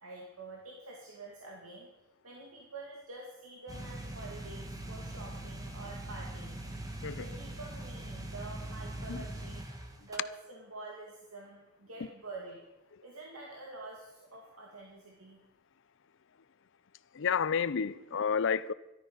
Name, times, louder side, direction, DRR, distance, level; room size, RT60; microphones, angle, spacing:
voice 1, 0.0-1.9 2.2-6.6 7.2-9.6 10.0-12.6 13.0-15.4, right 2 dB, 90° right, 2.5 m, -47 dB
sound 1, 3.7-10.2, right 1 dB, 15° right, 1.5 m, -42 dB
voice 2, 17.2-18.7, left 6 dB, 60° left, 0.5 m, -30 dB
13.5 x 12.0 x 5.7 m
head